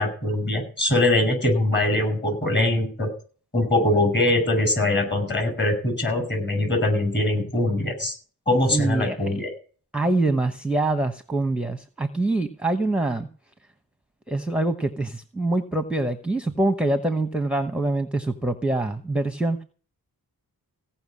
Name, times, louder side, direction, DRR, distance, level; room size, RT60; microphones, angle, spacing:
voice 1, 0.0-3.1 3.5-8.1 8.5-9.5, left 1 dB, 30° left, 4 dB, 7.5 m, -22 dB
voice 2, 8.7-9.4 9.9-13.3 14.3-19.6, right 2 dB, 5° right, 8 dB, 1.0 m, -25 dB
16.5 x 5.9 x 9.7 m, 0.40 s
wide cardioid pair, 95°, 37 cm